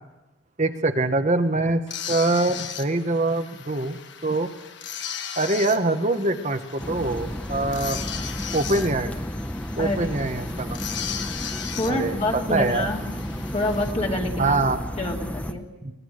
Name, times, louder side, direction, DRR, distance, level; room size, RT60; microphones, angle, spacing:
voice 1, 0.6-1.8 2.1-4.0 4.2-4.5 5.4-8.0 8.5-9.1 9.8-10.8 11.9-12.9 14.4-14.8 15.8-15.9, right 2 dB, 35° right, 8 dB, 1.2 m, -24 dB
sound 1, 1.9-13.9, left 8 dB, 60° left, 1.4 m, -37 dB
sound 2, 6.8-15.5, equal, 5° left, 0.9 m, -32 dB
voice 2, 11.8-13.0 13.5-14.6 15.0-15.6, left 1 dB, 30° left, -1 dB, 2.5 m, -27 dB
23.5 x 20.0 x 6.5 m, 1.0 s
head